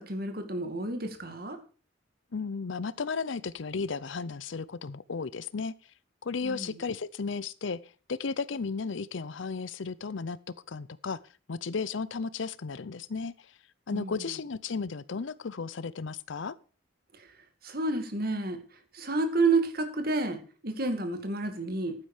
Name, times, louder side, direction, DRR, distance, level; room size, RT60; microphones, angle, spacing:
voice 1, 0.0-1.6 6.4-6.8 13.9-14.2 17.6-18.6 18.9-21.9, right 3 dB, 50° right, 7 dB, 2.3 m, -30 dB
voice 2, 2.3-5.7 6.2-7.8 8.1-10.4 10.7-11.2 11.5-13.3 13.9-16.5, left 4 dB, 75° left, 17 dB, 0.6 m, -34 dB
11.5 x 9.9 x 4.9 m, 0.37 s
head